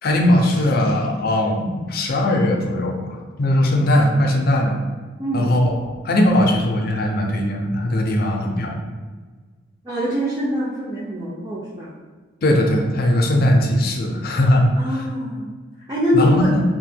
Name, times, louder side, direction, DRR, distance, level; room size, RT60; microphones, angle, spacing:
voice 1, 0.0-4.8 5.3-5.7 6.0-8.8 12.4-15.0 16.1-16.6, left 1 dB, 50° left, 1 dB, 0.4 m, -19 dB
voice 2, 5.2-5.5 9.8-11.9 14.7-15.5 15.9-16.5, equal, 15° right, -8 dB, 0.4 m, -23 dB
2.8 x 2.1 x 3.3 m, 1.4 s
head